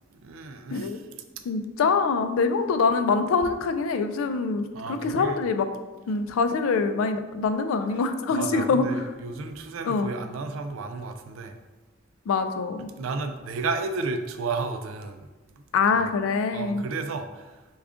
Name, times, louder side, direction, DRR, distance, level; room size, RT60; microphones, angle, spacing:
voice 1, 0.1-1.0 4.7-5.4 8.3-11.5 13.0-15.3 15.9-16.1 16.5-17.5, right 3 dB, 80° right, 7 dB, 0.4 m, -32 dB
voice 2, 1.5-5.7 6.1-9.0 9.8-10.1 12.3-12.9 15.7-16.8, left 4 dB, 85° left, 9 dB, 0.3 m, -24 dB
3.5 x 2.3 x 3.6 m, 1.2 s
head